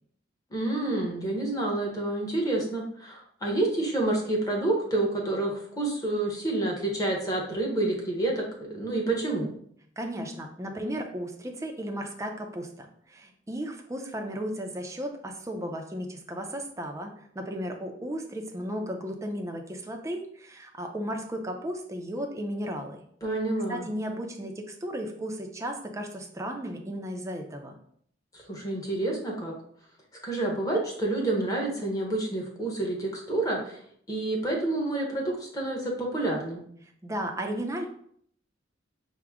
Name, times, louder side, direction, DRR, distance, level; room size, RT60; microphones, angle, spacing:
voice 1, 0.5-8.4 8.7-9.5 23.2-23.9 28.5-29.5 30.2-33.8 34.1-36.6, right 2 dB, 20° left, -1 dB, 0.9 m, -28 dB
voice 2, 10.0-23.0 23.7-27.8 37.0-37.9, equal, 15° right, 3 dB, 0.5 m, -35 dB
4.8 x 2.1 x 3.5 m, 0.64 s
head